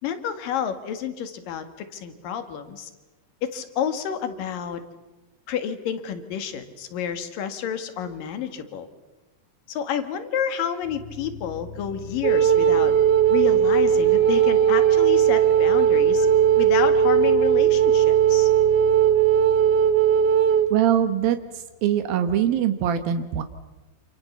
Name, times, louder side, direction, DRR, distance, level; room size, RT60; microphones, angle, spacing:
voice 1, 0.0-2.9 3.4-4.8 5.5-8.9 9.7-12.9 13.3-16.3 16.6-18.5, left 8 dB, 70° left, 9 dB, 3.4 m, -29 dB
sound 1, 10.8-21.7, left 6 dB, 55° left, 3.1 m, -40 dB
Wind instrument woodwind instrument, 12.2-20.7, right 9 dB, 65° right, 1.5 m, -18 dB
voice 2, 20.7-23.4, right 10 dB, 80° right, 8 dB, 2.9 m, -23 dB
28.0 x 27.5 x 7.3 m, 1.1 s
omnidirectional pair, 4.1 m